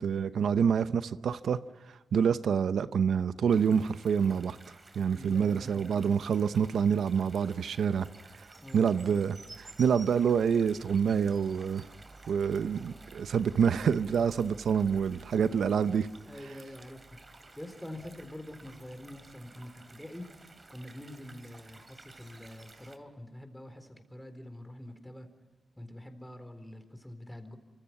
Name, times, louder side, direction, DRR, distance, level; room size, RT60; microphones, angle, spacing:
voice 1, 0.0-1.6 1.9-4.6 5.0-8.1 8.4-8.5 8.7-11.9 12.3-16.1, right 7 dB, 80° right, 12 dB, 0.7 m, -27 dB
sound 1, 3.5-23.0, right 2 dB, 35° right, 3.0 m, -53 dB
voice 2, 5.1-5.9 8.6-8.9 16.2-17.1 17.6-20.3 20.7-25.3 25.8-27.6, left 1 dB, 10° left, 8 dB, 4.1 m, -45 dB
27.5 x 25.5 x 5.9 m, 1.2 s
cardioid pair, 80°, 0 cm